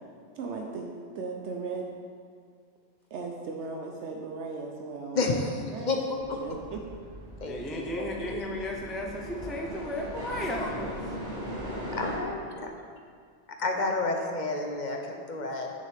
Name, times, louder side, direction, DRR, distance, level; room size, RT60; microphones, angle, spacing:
voice 1, 0.4-1.9 3.1-5.4 5.7-5.9 6.4-6.8, right 4 dB, 75° right, 1 dB, 1.0 m, -37 dB
voice 2, 5.1-5.6 5.9-6.0 6.3-6.4 7.4-8.4 11.9-12.7 13.6-15.7, left 3 dB, 45° left, 2 dB, 0.7 m, -30 dB
sound 1, 6.1-12.2, equal, 40° right, 2.0 m, -39 dB
voice 3, 7.4-11.1, left 1 dB, ahead, -1 dB, 0.4 m, -34 dB
9.4 x 6.4 x 3.4 m, 2.1 s
omnidirectional pair, 1.2 m